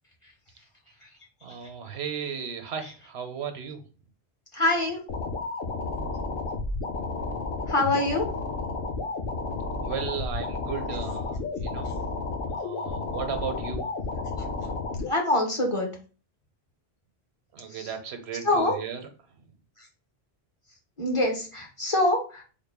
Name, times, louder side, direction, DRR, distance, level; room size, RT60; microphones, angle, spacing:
voice 1, 1.4-3.8 9.8-11.9 12.5-13.9 17.5-19.0, right 7 dB, 90° right, 6 dB, 0.9 m, -35 dB
voice 2, 4.5-5.0 7.7-8.3 14.4-14.7 15.1-15.9 17.7-17.9 18.4-18.8 19.8-19.9 21.0-22.4, left 2 dB, 35° left, 1 dB, 0.7 m, -25 dB
sound 1, 5.1-15.1, left 3 dB, 60° left, 0.9 m, -32 dB
3.7 x 2.1 x 3.4 m, 0.37 s
omnidirectional pair, 1.1 m